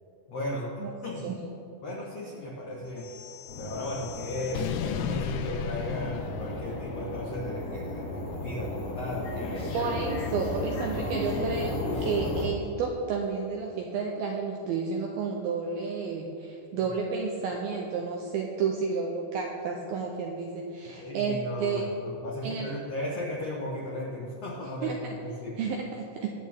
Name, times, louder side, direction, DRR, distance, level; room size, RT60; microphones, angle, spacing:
voice 1, 0.3-1.3 1.8-3.2 3.6-9.8 21.0-25.7, left 1 dB, 75° left, -4 dB, 1.5 m, -36 dB
sound 1, 3.0-7.3, left 8 dB, 90° left, 2.3 m, -35 dB
sound 2, 3.5-12.4, left 2 dB, 55° left, 1.9 m, -35 dB
voice 2, 9.7-21.9 22.4-22.7 24.6-25.2 25.6-26.3, right 5 dB, 80° right, 0 dB, 2.2 m, -31 dB
23.0 x 8.5 x 3.6 m, 2.7 s
omnidirectional pair, 5.3 m